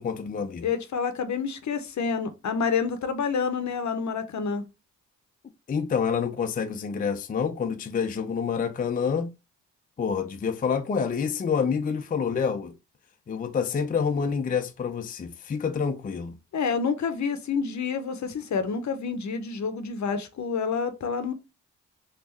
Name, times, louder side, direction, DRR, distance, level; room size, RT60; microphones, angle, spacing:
voice 1, 0.0-0.7 5.7-9.3 10.0-12.7 13.3-16.4, left 6 dB, 25° left, 0.4 m, -27 dB
voice 2, 0.6-4.6 16.5-21.3, left 5 dB, 55° left, 0.7 m, -28 dB
3.4 x 2.4 x 3.1 m
supercardioid pair, 45°, 33 cm